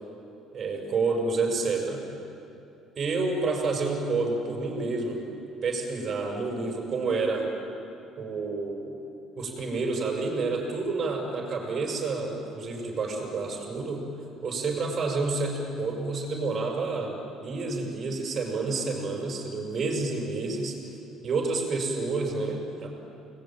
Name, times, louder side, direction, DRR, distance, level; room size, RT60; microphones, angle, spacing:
voice 1, 0.5-2.0 2.9-5.2 5.6-7.5 8.2-9.0 9.4-14.0 14.4-17.2 17.4-20.8 21.2-22.9, right 3 dB, 35° right, 0 dB, 6.6 m, -29 dB
30.0 x 21.5 x 9.3 m, 2.7 s
cardioid pair, 145°, 0 cm